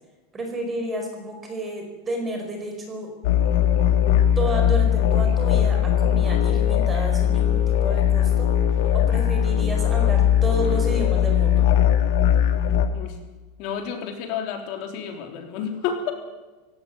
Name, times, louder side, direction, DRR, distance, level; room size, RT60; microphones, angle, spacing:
voice 1, 0.3-3.1 4.4-8.5 8.8-11.7, right 1 dB, 15° right, 3 dB, 4.7 m, -31 dB
sound 1, 3.2-12.9, left 10 dB, 70° left, 2.2 m, -20 dB
voice 2, 13.6-16.1, left 7 dB, 50° left, 4 dB, 3.6 m, -30 dB
18.0 x 17.0 x 9.4 m, 1.2 s
supercardioid pair, 165°, 0 cm